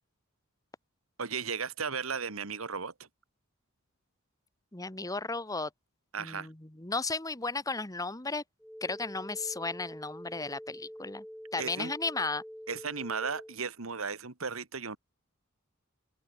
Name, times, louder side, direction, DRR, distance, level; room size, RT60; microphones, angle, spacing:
voice 1, 1.2-3.1 6.1-6.5 11.6-11.9 12.7-15.0, right 5 dB, 90° right, 1.7 m, -35 dB
voice 2, 4.7-5.7 6.2-8.4 8.8-11.2 11.5-12.4, left 3 dB, 15° left, 1.4 m, -34 dB
sound 1, 8.6-13.6, equal, ahead, 1.9 m, -46 dB
open air
head